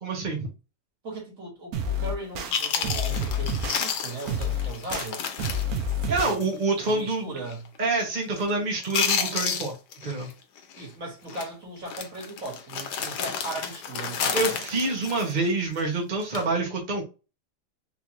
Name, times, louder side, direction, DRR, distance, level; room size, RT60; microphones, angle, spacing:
voice 1, 0.0-0.5 6.1-7.3 7.8-9.7 10.0-10.3 14.3-17.0, right 3 dB, 35° right, 0.8 m, -27 dB
voice 2, 1.0-5.2 6.1-6.4 6.8-7.6 10.8-14.7, right 2 dB, 55° right, 2.0 m, -38 dB
sound 1, 1.7-2.5 2.8-3.8 4.3-5.1 5.4-6.4, left 2 dB, 70° right, 1.0 m, -28 dB
Chewing mastication, 2.2-2.3 2.5-6.5 6.8-7.0 7.5-7.8 8.0-8.5 8.8-10.3 10.6-10.8 11.3-11.5 11.9-15.8 16.2-16.5, left 7 dB, 85° left, 1.2 m, -31 dB
3.9 x 2.4 x 2.9 m
omnidirectional pair, 1.8 m